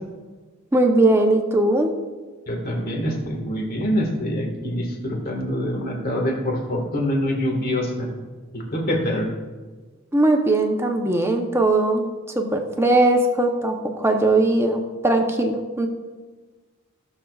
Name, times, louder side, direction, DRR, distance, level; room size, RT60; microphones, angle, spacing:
voice 1, 0.7-1.9 10.1-12.1 12.3-15.9, right 2 dB, 10° right, 3 dB, 0.8 m, -19 dB
voice 2, 2.5-8.1 8.5-9.3, equal, 45° left, 1 dB, 1.7 m, -25 dB
18.0 x 6.6 x 2.4 m, 1.3 s
head